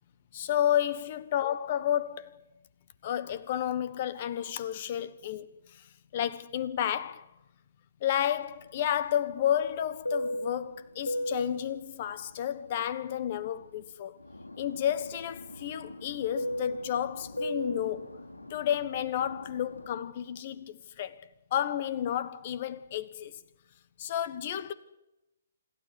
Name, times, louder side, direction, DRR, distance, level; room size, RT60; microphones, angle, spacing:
voice 1, 0.3-2.3 3.0-5.9 6.1-7.3 8.0-14.2 14.6-18.1 18.5-23.3 24.0-24.7, left 10 dB, 40° left, 1.4 m, -31 dB
Fixed-wing aircraft airplane, 8.4-13.8 14.2-20.0, left 1 dB, 80° left, 3.8 m, -38 dB
26.5 x 13.0 x 8.3 m
figure-of-eight pair, 125°, 0 cm